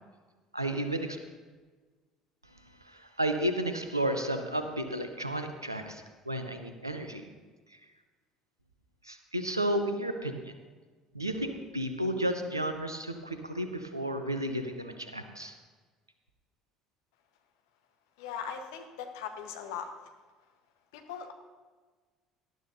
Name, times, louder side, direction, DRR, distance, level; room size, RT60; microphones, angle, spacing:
voice 1, 0.5-1.2 2.9-7.3 9.0-10.5 11.1-15.5, right 1 dB, 85° right, 7 dB, 0.8 m, -32 dB
voice 2, 18.2-20.1 20.9-21.3, left 7 dB, 65° left, 5 dB, 1.2 m, -40 dB
18.0 x 12.0 x 2.7 m, 1.4 s
figure-of-eight pair, 55°, 2 cm